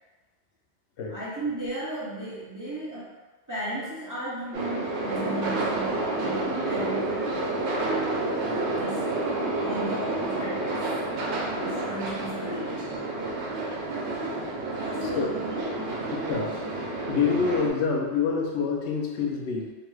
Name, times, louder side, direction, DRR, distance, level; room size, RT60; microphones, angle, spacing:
voice 1, 1.1-3.1 3.5-8.0 8.7-9.0 9.6-10.9 11.5-12.9 14.7-15.9, right 1 dB, 30° right, -8 dB, 0.3 m, -35 dB
sound 1, 4.5-17.7, right 2 dB, 75° right, 0.9 m, -29 dB
voice 2, 14.9-15.4 16.3-16.6 17.1-19.7, left 5 dB, 75° left, -1 dB, 0.8 m, -27 dB
2.8 x 2.2 x 3.1 m, 1.2 s
omnidirectional pair, 1.2 m